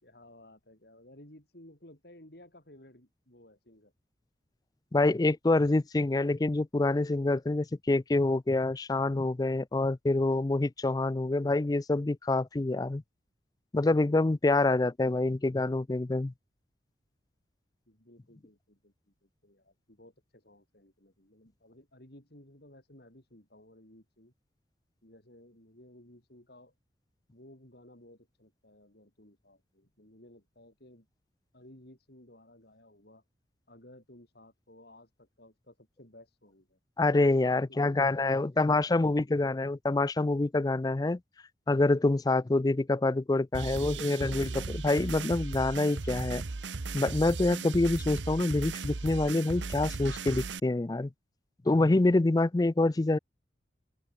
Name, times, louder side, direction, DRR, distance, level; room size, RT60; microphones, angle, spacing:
voice 1, 0.0-3.9 17.9-24.3 25.0-26.7 27.3-31.1 31.5-33.2 33.7-36.8, left 1 dB, 60° left, 4.7 m, -56 dB
voice 2, 4.9-13.0 13.7-16.3 37.0-41.2 41.7-46.4 46.9-51.1 51.7-53.2, left 2 dB, 20° left, 0.4 m, -26 dB
sound 1, 43.5-50.6, right 3 dB, 85° right, 1.0 m, -36 dB
open air
head